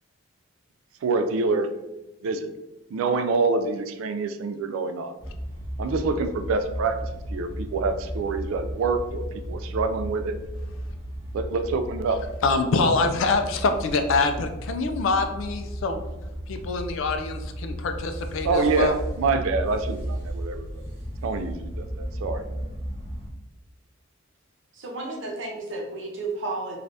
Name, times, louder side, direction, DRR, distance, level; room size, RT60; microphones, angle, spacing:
voice 1, 1.0-1.7 2.2-2.5 2.9-5.1 5.8-10.4 11.3-12.2 18.4-20.7 21.2-22.4, right 4 dB, 85° right, 9 dB, 0.3 m, -26 dB
sound 1, 5.2-23.3, equal, 15° right, 0.7 m, -34 dB
voice 2, 12.4-16.0 16.5-19.0, left 3 dB, 75° left, 7 dB, 0.3 m, -25 dB
voice 3, 24.7-26.8, right 2 dB, 65° right, 0 dB, 0.7 m, -32 dB
3.2 x 2.4 x 2.6 m, 0.98 s
head